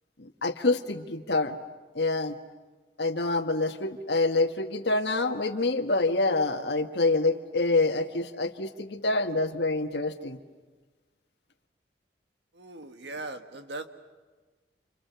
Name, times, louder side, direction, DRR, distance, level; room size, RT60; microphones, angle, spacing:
voice 1, 0.2-1.6 1.9-2.3 3.0-10.4, left 2 dB, 75° left, 6 dB, 1.6 m, -26 dB
voice 2, 12.5-13.9, right 2 dB, 80° right, 7 dB, 1.7 m, -39 dB
30.0 x 28.5 x 6.9 m, 1.3 s
head